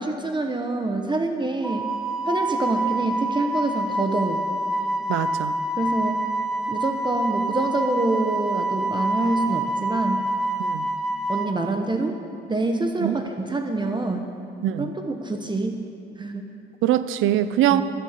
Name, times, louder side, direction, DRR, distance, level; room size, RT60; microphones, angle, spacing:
voice 1, 0.0-1.9 2.2-4.4 5.8-6.3 6.7-10.3 11.3-12.2 12.5-14.3 14.8-15.8 16.2-16.4 17.7-17.8, right 2 dB, 25° right, 4 dB, 1.2 m, -26 dB
Wind instrument woodwind instrument, 1.6-11.5, right 2 dB, ahead, 1.1 m, -26 dB
voice 2, 5.1-5.6 10.6-10.9 13.0-13.2 14.6-14.9 16.8-17.8, right 12 dB, 90° right, 13 dB, 0.6 m, -22 dB
15.0 x 9.5 x 6.7 m, 2.7 s
cardioid pair, 90°, 20 cm